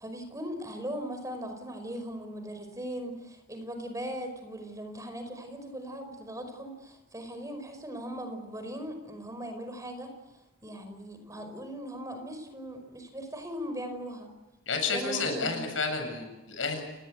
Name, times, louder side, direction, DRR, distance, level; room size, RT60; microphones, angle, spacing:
voice 1, 0.0-10.1 10.6-14.3 14.9-15.6, equal, 15° right, 7 dB, 5.2 m, -39 dB
voice 2, 14.7-16.8, left 4 dB, 80° left, 5 dB, 7.8 m, -31 dB
29.5 x 20.0 x 8.2 m, 1.1 s
head